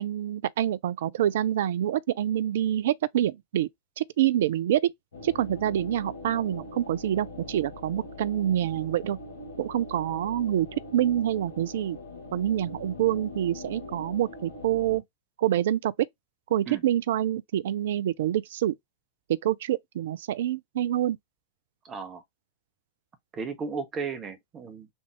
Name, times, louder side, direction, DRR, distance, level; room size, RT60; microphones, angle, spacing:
voice 1, 0.0-3.7 4.0-4.9 5.2-9.2 9.6-10.7 10.9-12.0 12.3-15.0 15.4-15.9 16.5-18.8 19.3-21.2, right 11 dB, 55° right, 0.3 m, -26 dB
sound 1, 5.1-15.0, left 2 dB, 65° left, 1.7 m, -42 dB
voice 2, 21.8-22.2 23.3-24.9, right 5 dB, 25° right, 0.9 m, -35 dB
3.6 x 2.5 x 3.3 m
figure-of-eight pair, 90°, 0 cm